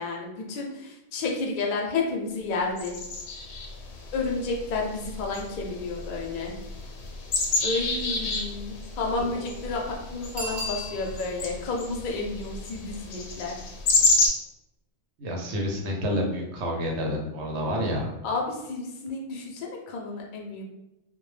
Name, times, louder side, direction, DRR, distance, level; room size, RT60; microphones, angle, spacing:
voice 1, 0.0-2.9 4.1-6.5 7.6-13.6 18.2-20.6, left 3 dB, 55° left, 0 dB, 0.6 m, -31 dB
sound 1, 2.8-14.3, left 3 dB, 90° left, 0.9 m, -30 dB
sound 2, 9.2-11.1, right 3 dB, 55° right, 0.7 m, -45 dB
Bicycle bell, 10.3-11.5 16.9-17.0, left 1 dB, ahead, 0.6 m, -35 dB
voice 2, 15.2-18.1, equal, 90° right, 0 dB, 0.9 m, -29 dB
2.2 x 2.1 x 3.1 m, 0.91 s
omnidirectional pair, 1.1 m